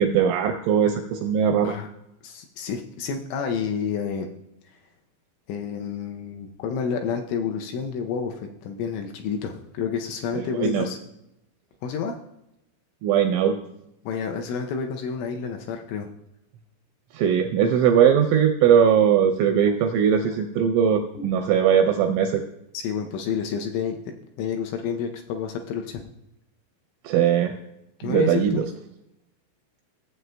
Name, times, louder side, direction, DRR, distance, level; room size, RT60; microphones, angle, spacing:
voice 1, 0.0-1.7 10.4-10.9 13.0-13.5 17.1-22.4 27.0-27.5 28.0-28.6, right 8 dB, 85° right, 5 dB, 2.7 m, -20 dB
voice 2, 2.2-4.3 5.5-11.0 11.8-12.2 14.0-16.1 19.5-19.7 21.2-21.3 22.7-24.0 24.4-26.0 28.0-28.6, left 6 dB, 80° left, 3 dB, 2.9 m, -29 dB
16.0 x 7.7 x 2.2 m, 0.85 s
omnidirectional pair, 6.0 m